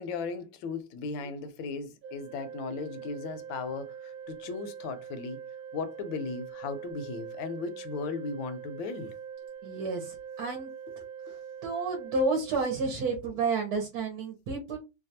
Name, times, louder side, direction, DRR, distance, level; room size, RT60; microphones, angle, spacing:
voice 1, 0.0-5.4 5.7-9.1 11.3-11.4, left 4 dB, 80° left, 1.3 m, -36 dB
Organ, 2.0-13.1, right 7 dB, 90° right, 1.4 m, -43 dB
voice 2, 9.6-10.7 11.6-14.8, right 3 dB, 65° right, 1.2 m, -30 dB
3.3 x 2.3 x 2.7 m
omnidirectional pair, 2.1 m